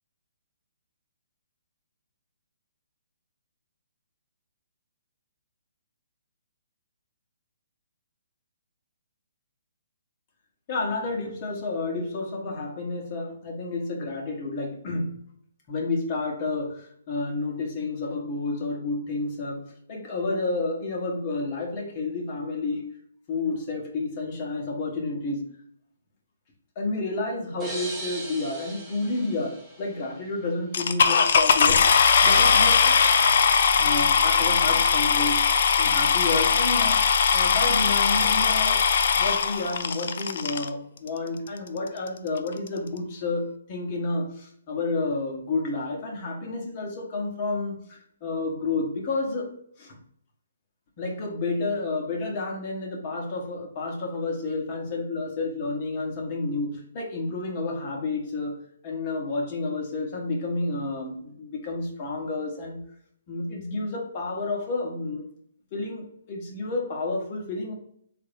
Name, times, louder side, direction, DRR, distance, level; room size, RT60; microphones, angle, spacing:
voice 1, 10.7-15.1 15.7-22.8 23.3-25.5 26.8-31.9 32.2-33.0 33.8-37.0 37.3-38.8 39.1-49.5 49.8-50.0 51.0-58.6 58.8-62.8 63.3-65.3 65.7-67.7, left 3 dB, 35° left, 0 dB, 1.0 m, -30 dB
sound 1, 27.6-30.4, right 1 dB, 10° right, 0.8 m, -38 dB
sound 2, 30.7-40.7 41.5-41.6 42.1-42.2 42.4-42.7, left 6 dB, 60° left, 0.3 m, -20 dB
3.7 x 2.5 x 3.3 m, 0.66 s
hypercardioid pair, 150°, 0 cm